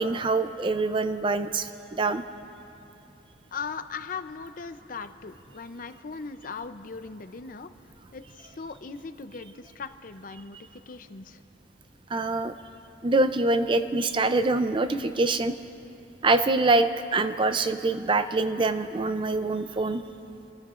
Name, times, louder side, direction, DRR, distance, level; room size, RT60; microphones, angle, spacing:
voice 1, 0.0-2.2 12.1-12.5 13.0-15.5 16.2-20.0, right 3 dB, 25° right, 10 dB, 0.4 m, -25 dB
voice 2, 3.5-7.7 8.1-10.6 10.9-11.4, left 5 dB, 45° left, 10 dB, 0.5 m, -39 dB
29.5 x 15.0 x 2.5 m, 2.9 s
head